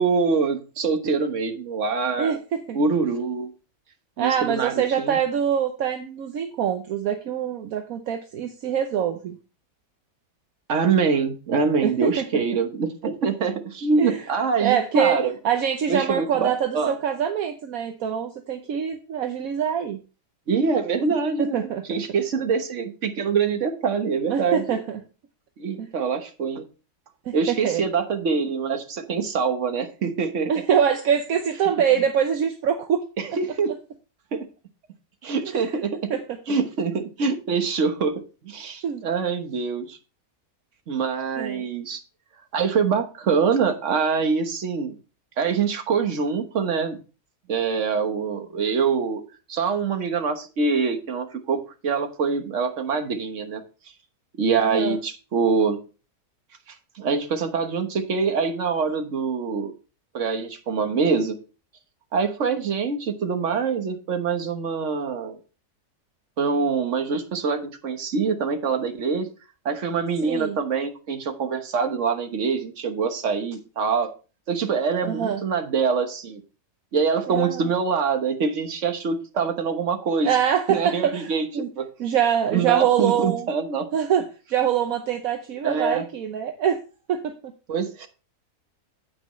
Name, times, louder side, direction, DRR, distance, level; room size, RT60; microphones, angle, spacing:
voice 1, 0.0-2.4 2.7-3.5 4.2-5.2 10.7-15.3 15.9-16.9 20.5-21.6 21.9-24.8 25.6-26.6 27.3-30.6 33.2-33.7 34.3-34.4 35.2-36.0 36.5-40.0 40.9-42.0 42.5-44.9 45.4-47.0 47.5-49.2 49.5-53.6 54.4-55.8 56.9-59.7 60.1-61.4 62.1-65.4 66.4-69.3 69.6-74.1 74.5-76.4 76.9-80.4 80.7-81.5 81.8-81.9 82.5-83.9 85.6-86.0 87.7-88.1, right 5 dB, 55° right, 7 dB, 1.5 m, -24 dB
voice 2, 2.2-2.8 4.2-9.4 11.8-12.2 14.0-14.2 14.6-15.2 15.4-20.0 21.4-21.8 24.3-25.0 25.8-25.9 27.3-27.8 30.5-33.1 36.1-36.2 38.8-39.0 41.4-41.7 54.6-55.0 70.2-70.6 75.0-75.4 77.3-77.7 80.2-81.7 82.0-83.5 83.9-86.8 87.1-87.3, right 8 dB, 70° right, 6 dB, 1.2 m, -24 dB
9.6 x 8.7 x 3.1 m, 0.33 s
omnidirectional pair, 1.6 m